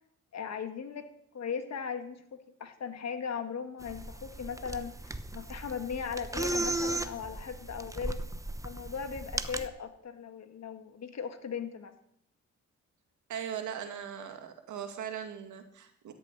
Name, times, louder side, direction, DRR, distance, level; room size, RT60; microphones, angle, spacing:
voice 1, 0.3-1.1 1.3-8.2 8.6-11.9, left 6 dB, 60° left, 8 dB, 1.9 m, -38 dB
sound 1, 3.8-9.7, right 2 dB, 10° right, 1.0 m, -36 dB
voice 2, 13.3-16.1, right 8 dB, 85° right, 6 dB, 2.2 m, -39 dB
14.0 x 7.0 x 9.8 m, 0.73 s
cardioid pair, 75°, 29 cm